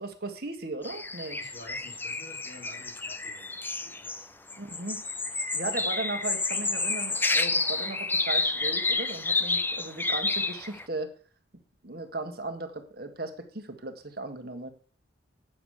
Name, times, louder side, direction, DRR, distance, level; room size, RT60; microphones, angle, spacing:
voice 1, 0.0-1.4 4.6-5.0 5.5-11.1 11.8-14.7, right 2 dB, 50° right, 6 dB, 1.6 m, -37 dB
sound 1, 0.8-4.2 4.5-10.8, left 3 dB, 10° left, 0.5 m, -30 dB
voice 2, 1.4-4.3, left 1 dB, 70° left, -3 dB, 4.4 m, -50 dB
9.0 x 7.1 x 6.6 m, 0.42 s
head